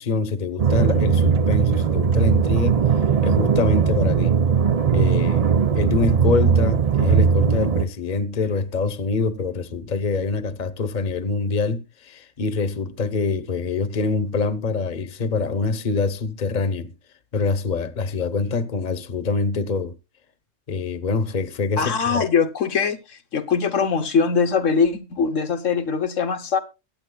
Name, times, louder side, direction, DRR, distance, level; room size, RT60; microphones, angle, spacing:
voice 1, 0.0-2.8 3.2-4.4 4.9-16.9 17.3-19.9 20.7-22.3, left 4 dB, 40° left, 1.0 m, -25 dB
sound 1, 0.6-7.9, right 6 dB, 45° right, 0.5 m, -19 dB
voice 2, 21.8-23.0 23.3-26.6, left 5 dB, 85° left, 1.5 m, -21 dB
22.5 x 8.7 x 2.3 m
omnidirectional pair, 1.3 m